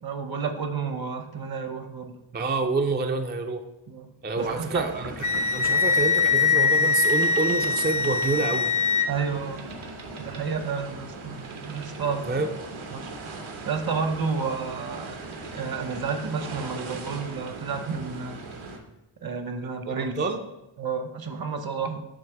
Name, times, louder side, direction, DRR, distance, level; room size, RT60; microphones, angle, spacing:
voice 1, 0.0-2.2 3.9-4.1 4.4-4.9 9.1-9.7 10.2-12.4 12.9-18.4 19.2-20.1 20.8-22.0, right 5 dB, 50° right, 7 dB, 0.8 m, -31 dB
voice 2, 2.3-3.6 4.2-8.7 12.3-12.5 19.9-20.4, right 3 dB, 25° right, 5 dB, 0.3 m, -28 dB
sound 1, 4.4-18.8, right 3 dB, 80° right, 1.1 m, -39 dB
Wind instrument woodwind instrument, 5.2-9.1, left 4 dB, 40° left, 0.5 m, -22 dB
7.4 x 2.8 x 5.9 m, 0.93 s
wide cardioid pair, 130°, 47 cm